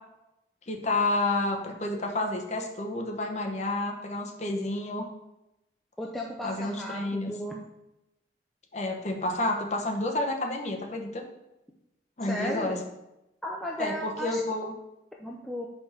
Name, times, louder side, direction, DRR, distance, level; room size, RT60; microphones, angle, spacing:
voice 1, 0.7-5.1 6.4-7.3 8.7-11.2 12.2-12.8 13.8-14.7, left 2 dB, 40° left, 2 dB, 0.9 m, -30 dB
voice 2, 6.0-7.6 12.2-12.8 13.4-14.7 15.2-15.7, equal, ahead, -2 dB, 0.5 m, -35 dB
5.6 x 5.2 x 4.9 m, 0.93 s
head